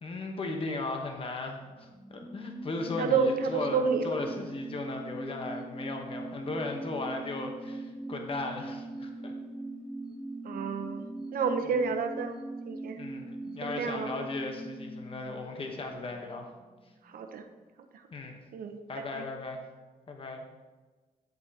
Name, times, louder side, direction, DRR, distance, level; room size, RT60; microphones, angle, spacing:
voice 1, 0.0-9.3 13.0-16.5 18.1-18.4 18.9-19.6 20.1-20.4, left 3 dB, 35° left, 3 dB, 1.1 m, -37 dB
sound 1, 1.8-16.8 17.1-17.2, right 2 dB, ahead, 1.3 m, -41 dB
voice 2, 3.0-4.1 10.4-12.4 12.7-13.0 13.6-14.1 17.0-17.4 18.5-18.8 19.1-19.2, right 5 dB, 75° right, 6 dB, 0.8 m, -30 dB
9.5 x 7.9 x 2.9 m, 1.3 s
cardioid pair, 115°, 15 cm